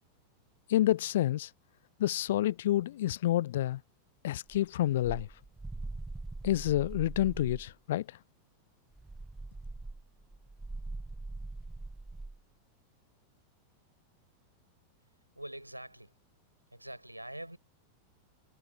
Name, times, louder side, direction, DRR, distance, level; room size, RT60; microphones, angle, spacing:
voice 1, 0.7-1.5 2.0-3.8 4.2-5.3 6.4-8.1, left 13 dB, 55° left, 0.6 m, -28 dB
sound 1, 4.5-7.7 8.9-12.4, right 2 dB, 5° right, 1.0 m, -42 dB
voice 2, 15.3-16.2 16.7-17.6, right 1 dB, 85° right, 6.3 m, -44 dB
figure-of-eight pair, 90°, 0 cm